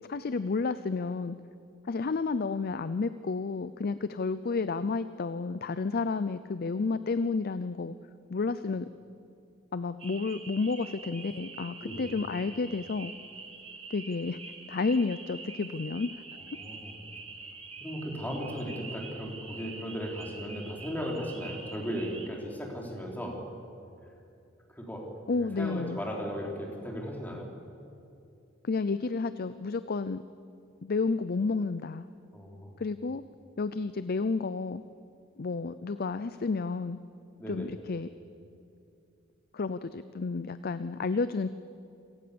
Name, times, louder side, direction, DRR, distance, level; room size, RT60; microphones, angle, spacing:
voice 1, 0.1-1.4 1.8-8.0 8.3-8.9 9.7-13.1 13.9-14.4 14.7-16.1 25.3-26.0 28.6-30.2 30.8-32.1 32.8-33.2 33.6-34.8 35.4-37.0 37.5-38.1 39.5-41.5, left 4 dB, 50° left, 13 dB, 0.5 m, -31 dB
sound 1, 10.0-22.3, right 4 dB, 30° right, 2.2 m, -45 dB
voice 2, 16.6-17.0 17.8-23.4 24.8-25.1 25.3-27.5 32.3-32.7 37.4-37.7, equal, 10° left, -1 dB, 4.1 m, -36 dB
27.5 x 18.0 x 7.0 m, 2.6 s
head